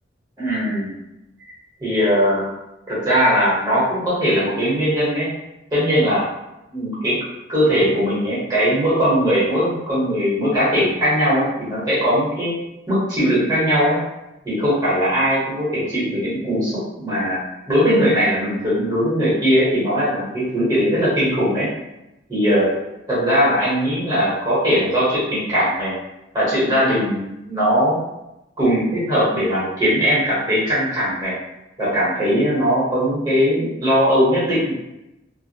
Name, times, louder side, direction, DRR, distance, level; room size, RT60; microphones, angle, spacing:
voice 1, 0.4-0.9 1.8-2.5 2.9-5.3 5.7-6.2 6.7-7.2 7.5-12.5 12.9-14.0 14.4-17.4 17.7-21.7 22.3-22.7 23.1-25.9 26.3-28.0 28.6-31.3 31.8-34.7, equal, 20° right, -10 dB, 1.0 m, -19 dB
2.5 x 2.1 x 2.7 m, 0.93 s
head